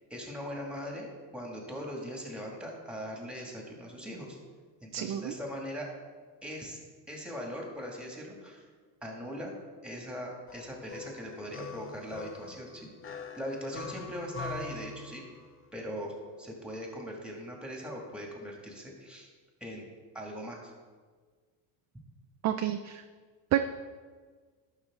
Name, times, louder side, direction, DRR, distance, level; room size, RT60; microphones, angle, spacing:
voice 1, 0.1-4.4 4.8-5.9 6.4-6.8 7.1-8.7 9.0-9.5 9.8-12.9 13.3-15.2 15.7-19.3 19.6-19.8 20.1-20.7, equal, ahead, -1 dB, 2.2 m, -40 dB
voice 2, 4.9-5.3 22.4-23.0 23.5-23.6, right 12 dB, 40° right, 8 dB, 0.4 m, -29 dB
sound 1, 10.5-15.7, left 4 dB, 30° left, 0.7 m, -44 dB
11.5 x 5.8 x 3.7 m, 1.5 s
supercardioid pair, 100°, 46 cm